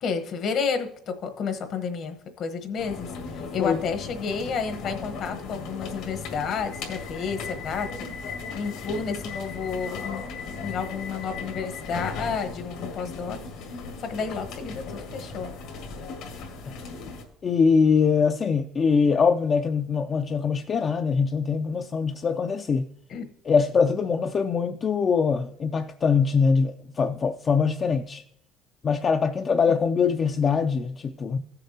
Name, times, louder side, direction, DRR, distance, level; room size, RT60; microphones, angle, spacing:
voice 1, 0.0-8.2 8.5-10.2 10.6-13.4 14.0-15.5 23.1-23.3 29.7-29.8, left 5 dB, 55° left, 1.1 m, -31 dB
sound 1, 2.8-17.2, left 4 dB, 80° left, 2.0 m, -37 dB
voice 2, 17.4-22.9 23.5-28.2 28.8-31.4, left 5 dB, 35° left, 0.4 m, -23 dB
15.0 x 6.8 x 2.8 m
cardioid pair, 110°, 0 cm